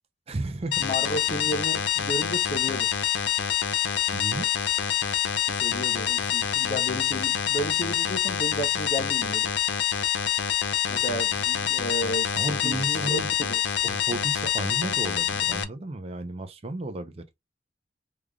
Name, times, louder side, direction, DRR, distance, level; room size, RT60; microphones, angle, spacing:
voice 1, 0.3-0.9 4.1-4.5 12.3-13.3 13.8-17.2, right 2 dB, 35° right, 0.5 m, -33 dB
sound 1, 0.7-15.6, left 10 dB, 75° left, 0.5 m, -26 dB
voice 2, 0.8-2.9 5.5-9.5 10.9-13.2 13.5-13.7, equal, 35° left, 0.7 m, -33 dB
3.6 x 3.3 x 2.2 m
head